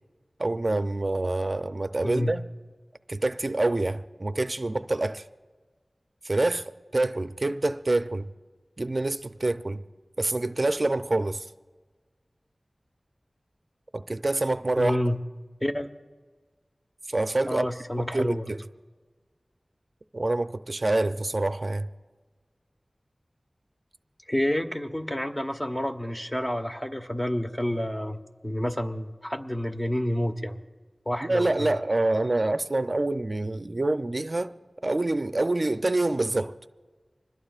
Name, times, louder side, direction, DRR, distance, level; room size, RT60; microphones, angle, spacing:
voice 1, 0.4-2.4 3.1-5.2 6.2-8.3 8.8-9.8 10.2-11.5 13.9-15.0 17.1-17.7 18.0-18.6 20.1-21.9 31.2-34.5 34.8-36.5, right 2 dB, 50° right, 0.5 m, -26 dB
voice 2, 2.0-2.3 14.8-15.2 15.6-15.9 17.5-18.5 24.3-28.2 28.4-30.6 31.1-31.8, equal, 25° left, 1.1 m, -29 dB
25.5 x 20.5 x 2.4 m
wide cardioid pair, 45°, 0 cm